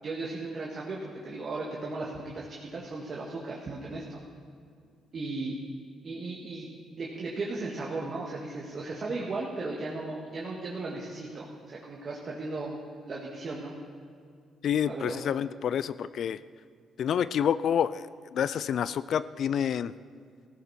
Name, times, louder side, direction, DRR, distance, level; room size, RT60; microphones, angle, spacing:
voice 1, 0.0-4.2 5.1-5.6 6.0-6.7 6.9-12.8 13.0-13.7 14.9-15.2, right 3 dB, 45° right, -3 dB, 2.0 m, -36 dB
voice 2, 14.6-16.4 17.0-18.1 18.3-19.9, left 8 dB, 65° left, 16 dB, 0.4 m, -28 dB
15.5 x 13.5 x 4.4 m, 2.2 s
cardioid pair, 90°, 0 cm